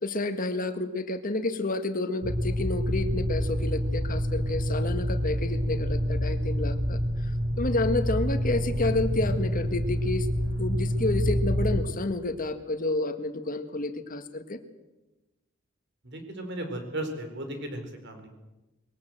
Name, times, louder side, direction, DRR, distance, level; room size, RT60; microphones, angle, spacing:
voice 1, 0.0-7.3 7.6-10.3 10.6-14.6, left 2 dB, 45° left, 8 dB, 1.8 m, -30 dB
sound 1, 2.2-11.8, equal, 20° right, 5.9 m, -27 dB
voice 2, 16.0-18.3, right 1 dB, 60° right, 6 dB, 4.7 m, -35 dB
22.0 x 18.0 x 7.8 m, 1.1 s
head